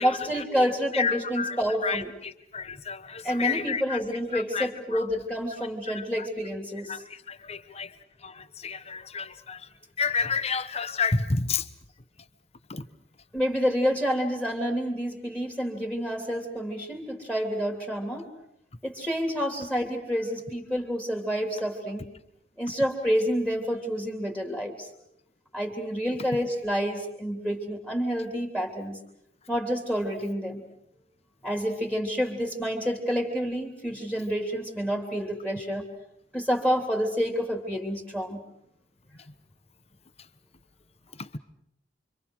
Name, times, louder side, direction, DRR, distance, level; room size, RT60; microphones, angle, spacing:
voice 1, 0.0-2.1 3.2-7.0 13.3-18.3 18.8-22.0 22.6-24.9 25.5-29.0 29.5-30.6 31.4-35.8 36.3-38.4, equal, 5° left, 3.2 m, -28 dB
voice 2, 0.9-4.0 4.3-5.1 5.9-6.3 6.9-7.9 8.2-9.7 10.0-11.7 12.7-12.9 41.2-41.4, left 5 dB, 35° left, 1.2 m, -31 dB
29.0 x 25.0 x 6.4 m
head